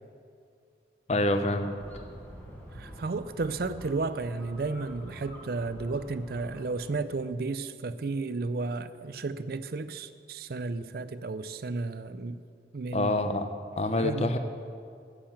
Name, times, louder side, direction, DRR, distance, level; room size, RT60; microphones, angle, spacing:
voice 1, 1.1-1.7 12.9-13.4 13.8-14.4, left 1 dB, 35° left, 8 dB, 0.6 m, -26 dB
sound 1, 1.7-6.9, equal, 10° left, 1.5 m, -47 dB
voice 2, 2.7-12.4 12.7-13.1 14.0-14.3, right 3 dB, 55° right, 13 dB, 0.4 m, -33 dB
8.7 x 7.6 x 7.6 m, 2.3 s
head